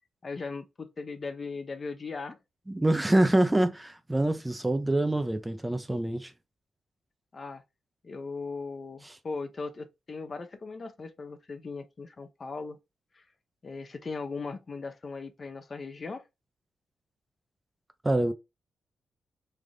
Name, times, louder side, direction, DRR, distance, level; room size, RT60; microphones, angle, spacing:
voice 1, 0.2-2.4 7.3-7.6 8.0-12.8 13.1-13.2 13.6-16.2, left 4 dB, 45° left, 0.6 m, -38 dB
voice 2, 2.7-6.3 18.0-18.3, right 1 dB, 15° right, 0.5 m, -25 dB
3.3 x 2.5 x 3.7 m
cardioid pair, 75°, 0 cm